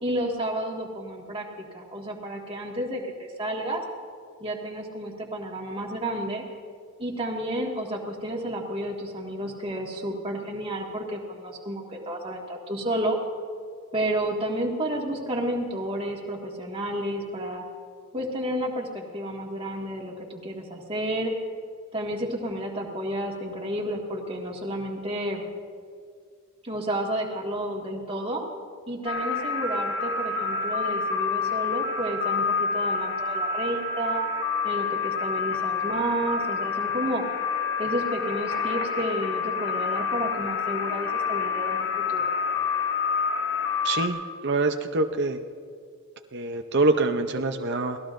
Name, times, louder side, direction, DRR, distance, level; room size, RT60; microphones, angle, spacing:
voice 1, 0.0-3.8 4.4-6.4 7.0-13.2 13.9-17.6 18.1-21.3 21.9-25.4 26.6-28.4 28.9-34.3 34.6-37.2 37.8-42.3, right 1 dB, 25° right, -1 dB, 1.9 m, -31 dB
sound 1, 29.1-44.1, left 5 dB, 55° left, 2.1 m, -28 dB
voice 2, 43.8-45.4 46.3-48.0, right 3 dB, 50° right, 5 dB, 0.7 m, -25 dB
28.0 x 18.5 x 2.6 m, 2.2 s
head